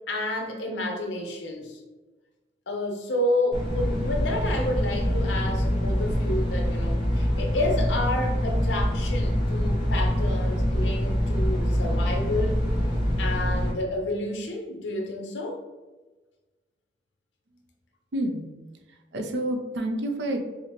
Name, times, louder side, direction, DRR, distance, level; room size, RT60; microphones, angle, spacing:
voice 1, 0.1-1.8 2.7-12.6 13.2-15.6, left 1 dB, 85° left, 2 dB, 0.7 m, -30 dB
sound 1, 3.5-13.7, equal, 25° left, 1.2 m, -25 dB
voice 2, 18.1-18.5 18.9-20.4, right 1 dB, 75° right, 3 dB, 0.5 m, -29 dB
4.9 x 2.0 x 2.9 m, 1.2 s
head